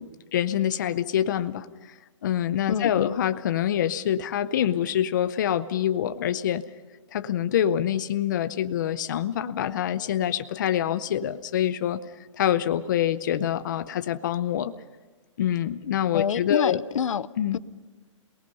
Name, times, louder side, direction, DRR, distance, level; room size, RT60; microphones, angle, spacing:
voice 1, 0.0-1.7 2.2-6.6 7.1-12.0 12.3-14.7 15.4-16.8 17.4-17.6, left 10 dB, 35° left, 12 dB, 0.6 m, -25 dB
voice 2, 2.7-3.1 16.1-17.3 17.5-17.6, left 8 dB, 75° left, 17 dB, 0.7 m, -27 dB
28.0 x 19.0 x 5.6 m, 1.3 s
hypercardioid pair, 175°, 17 cm